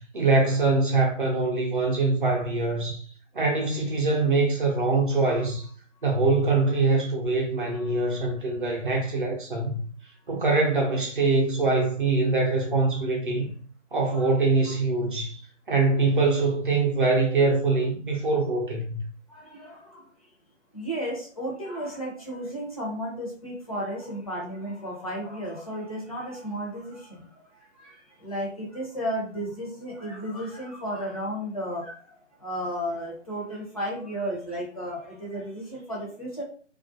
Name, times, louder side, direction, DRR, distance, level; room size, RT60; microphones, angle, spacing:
voice 1, 0.1-3.0 3.3-5.7 6.0-9.8 10.3-13.5 13.9-15.4 15.7-19.0, right 3 dB, 45° right, 0.6 m, -23 dB
voice 2, 19.3-20.1 20.7-36.4, equal, 30° left, 0.6 m, -34 dB
2.4 x 2.1 x 2.4 m
figure-of-eight pair, 145°, 37 cm